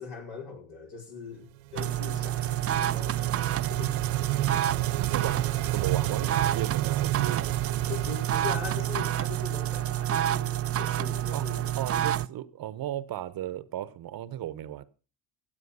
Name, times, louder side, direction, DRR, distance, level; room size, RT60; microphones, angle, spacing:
voice 1, 0.0-4.0 7.9-11.7, left 6 dB, 65° left, 5.1 m, -41 dB
sound 1, 1.6-10.3, right 15 dB, 85° right, 0.8 m, -33 dB
sound 2, 1.8-12.3, right 12 dB, 35° right, 0.5 m, -29 dB
voice 2, 5.0-7.5 11.3-11.5 11.8-14.9, right 12 dB, 60° right, 1.0 m, -35 dB
15.5 x 7.8 x 5.5 m
supercardioid pair, 70°, 41 cm